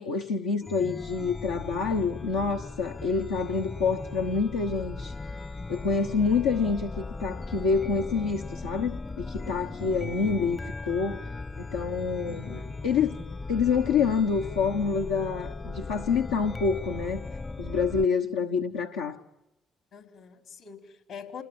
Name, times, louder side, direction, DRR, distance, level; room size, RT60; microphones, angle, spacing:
voice 1, 0.0-5.1 5.7-10.6 10.9-11.2 11.6-13.2 13.5-17.2 17.6-19.2, left 5 dB, 90° left, 1.1 m, -27 dB
Chime, 0.6-18.0, left 3 dB, 35° left, 0.9 m, -38 dB
voice 2, 12.2-12.7 19.9-21.4, left 6 dB, 70° left, 4.1 m, -44 dB
29.0 x 20.0 x 8.8 m
hypercardioid pair, 50°, 0 cm